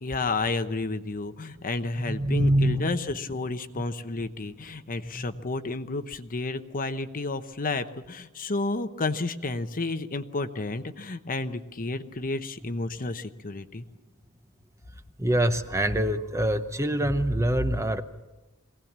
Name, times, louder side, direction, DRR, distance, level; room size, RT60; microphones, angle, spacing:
voice 1, 0.0-13.8, left 3 dB, 40° left, 10 dB, 0.9 m, -31 dB
voice 2, 2.0-2.8 5.1-5.3 15.2-18.0, right 1 dB, 15° right, 9 dB, 0.8 m, -24 dB
22.5 x 17.5 x 7.4 m, 1.1 s
head